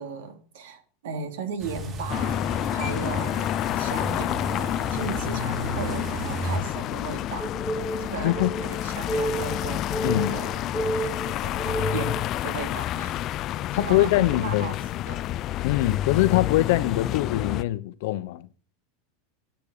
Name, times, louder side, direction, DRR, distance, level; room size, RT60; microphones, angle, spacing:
voice 1, 0.0-4.4 4.7-7.6 8.0-10.6 10.9-13.3 13.7-14.7 15.1-15.2, right 5 dB, 80° right, 3.3 m, -36 dB
sound 1, 1.6-6.6, right 1 dB, 30° right, 4.3 m, -33 dB
sound 2, 2.1-17.6, left 13 dB, 40° left, 0.5 m, -29 dB
sound 3, 7.4-12.2, right 2 dB, 10° left, 1.0 m, -31 dB
voice 2, 8.2-8.5 10.0-10.4 13.7-14.8 15.6-18.5, left 16 dB, 65° left, 0.9 m, -23 dB
10.0 x 9.1 x 6.7 m
supercardioid pair, 140°, 0 cm